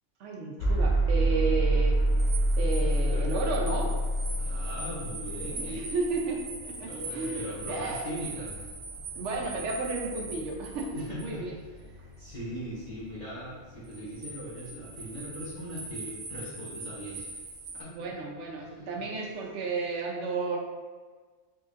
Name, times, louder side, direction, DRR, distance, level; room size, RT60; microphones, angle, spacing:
voice 1, 0.2-2.0 2.6-3.9 5.5-8.1 9.1-11.5 17.9-20.6, right 3 dB, 80° right, 0 dB, 1.0 m, -33 dB
sound 1, 0.6-16.5, right 1 dB, 60° left, 0.4 m, -30 dB
sound 2, 2.0-11.3 13.8-17.8, right 3 dB, 60° right, 0.8 m, -42 dB
voice 2, 2.8-3.3 4.4-5.8 6.8-8.7 10.9-11.4 12.2-17.3 17.7-17.9 18.6-18.9, equal, 40° left, -11 dB, 1.1 m, -40 dB
3.9 x 3.1 x 2.5 m, 1.4 s
omnidirectional pair, 1.2 m